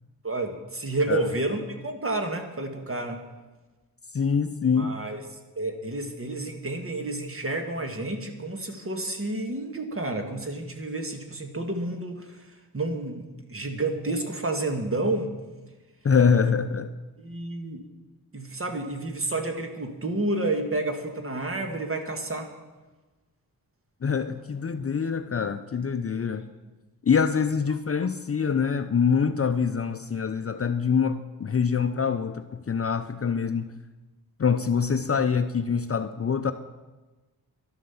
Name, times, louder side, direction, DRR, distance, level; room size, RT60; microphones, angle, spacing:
voice 1, 0.2-3.2 4.7-5.2 5.5-15.4 17.2-17.9 18.3-22.5, right 2 dB, 35° right, 5 dB, 1.7 m, -30 dB
voice 2, 4.1-4.9 16.0-16.9 24.0-26.5 27.0-33.7 34.4-36.5, left 6 dB, 40° left, 9 dB, 0.6 m, -25 dB
11.5 x 11.5 x 7.1 m, 1.2 s
wide cardioid pair, 125°, 37 cm